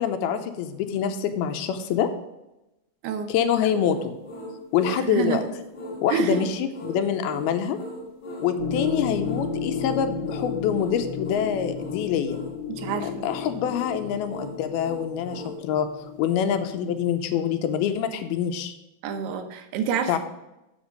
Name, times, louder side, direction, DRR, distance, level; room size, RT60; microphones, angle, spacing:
voice 1, 0.0-2.1 3.3-4.2 4.7-5.4 6.0-7.8 8.4-12.4 13.0-18.8 20.1-20.2, left 8 dB, 80° left, 8 dB, 2.4 m, -25 dB
sound 1, 3.7-15.6, equal, 35° left, 1.4 m, -39 dB
voice 2, 5.1-5.4 6.1-6.5 12.7-13.3 19.0-20.2, right 7 dB, 85° right, 7 dB, 3.0 m, -27 dB
sound 2, 8.6-17.1, left 6 dB, 60° left, 2.6 m, -33 dB
7.9 x 6.9 x 5.1 m, 0.93 s
omnidirectional pair, 4.6 m